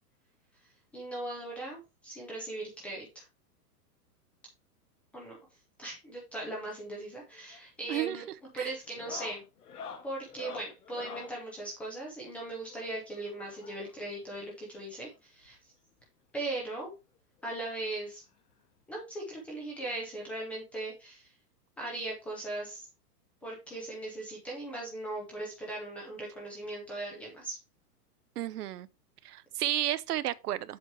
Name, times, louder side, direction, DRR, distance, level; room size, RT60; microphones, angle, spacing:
voice 1, 0.9-3.2 5.1-5.4 5.8-8.3 8.5-9.4 10.0-15.6 16.3-16.9 17.4-18.2 18.9-21.3 21.8-22.9 23.4-27.6, right 2 dB, 5° left, 0.5 m, -39 dB
sound 1, 7.3-7.7 7.9-8.3 8.8-11.4 12.7-14.1 15.1-15.2 15.4-15.6 16.0-16.1 17.4-17.5 18.8-18.9, left 6 dB, 70° left, 2.0 m, -46 dB
voice 2, 7.9-8.2 8.5-8.7 28.4-28.9 29.2-30.8, right 13 dB, 70° right, 0.7 m, -32 dB
7.4 x 4.5 x 4.7 m
hypercardioid pair, 155°, 48 cm